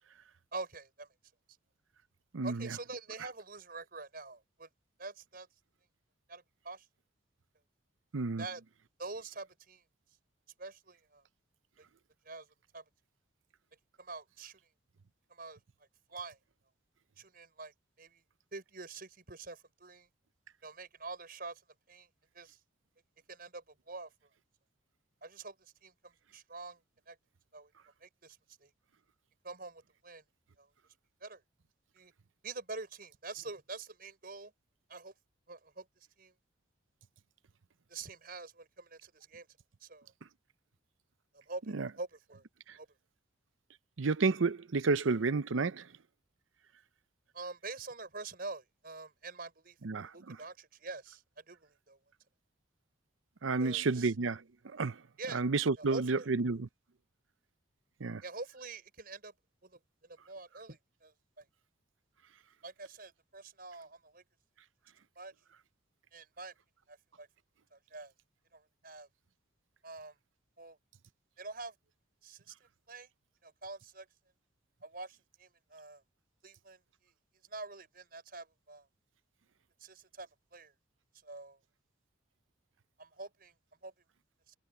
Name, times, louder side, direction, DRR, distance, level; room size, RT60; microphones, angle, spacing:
voice 1, 0.5-1.1 2.4-4.7 5.0-5.5 6.3-6.9 8.4-8.6 9.0-9.8 10.6-11.2 11.8-11.9 12.3-12.5 12.7-12.8 14.0-14.6 15.3-15.6 16.1-16.4 17.2-17.7 18.0-18.2 18.5-20.1 20.6-21.6 21.9-22.1 22.3-22.6 23.3-24.1 25.2-26.8 27.1-27.2 27.5-27.7 28.0-28.7 29.4-30.2 30.6-30.7 31.2-31.4 31.9-32.1 32.4-34.5 34.9-35.1 35.5-35.9 36.2-36.3 37.9-39.5 39.8-40.1 41.3-42.4 42.8-42.9 47.3-52.0 53.6-54.1 55.2-55.4 55.8-56.3 58.2-59.3 59.6-61.4 62.6-64.2 65.2-65.3 66.1-66.5 66.9-67.3 67.7-68.1 68.5-69.1 69.8-70.2 70.6-70.8 71.4-71.7 72.2-72.5 72.9-73.1 73.4-74.1 74.8-76.0 76.4-77.1 77.5-78.9 79.8-80.7 81.2-81.6 83.0-83.5 83.8-83.9 84.5-84.6, right 3 dB, 50° right, 5.5 m, -46 dB
voice 2, 2.3-2.7 8.1-8.4 41.7-41.9 44.0-45.8 49.8-50.4 53.4-54.4 54.7-55.0 55.3-56.7 58.0-58.2, right 4 dB, 85° right, 0.7 m, -30 dB
head